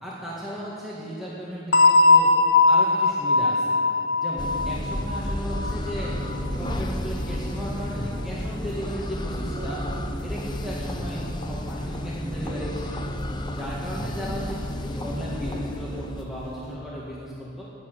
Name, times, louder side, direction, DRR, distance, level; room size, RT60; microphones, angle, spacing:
voice 1, 0.0-2.3 2.7-3.8 4.2-6.2 6.5-9.9 10.2-13.0 13.4-17.6, equal, ahead, -7 dB, 2.0 m, -35 dB
sound 1, 1.7-6.4, left 3 dB, 65° left, 1.0 m, -20 dB
sound 2, 4.3-16.8, right 2 dB, 65° right, 1.5 m, -41 dB
sound 3, 4.4-16.2, left 1 dB, 20° left, 0.8 m, -32 dB
18.0 x 7.4 x 9.2 m, 2.7 s
head